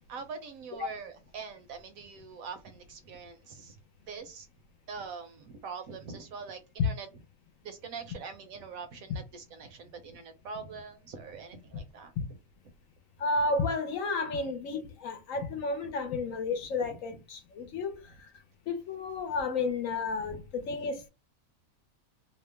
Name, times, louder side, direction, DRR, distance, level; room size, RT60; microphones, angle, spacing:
voice 1, 0.1-3.8 4.1-4.5 4.9-7.1 7.6-12.1 15.4-15.6 16.9-17.2 17.7-17.8 20.3-20.9, right 5 dB, 70° right, 1.0 m, -44 dB
voice 2, 13.2-18.3 18.7-21.1, left 3 dB, 70° left, 1.0 m, -32 dB
2.9 x 2.0 x 3.3 m
omnidirectional pair, 1.6 m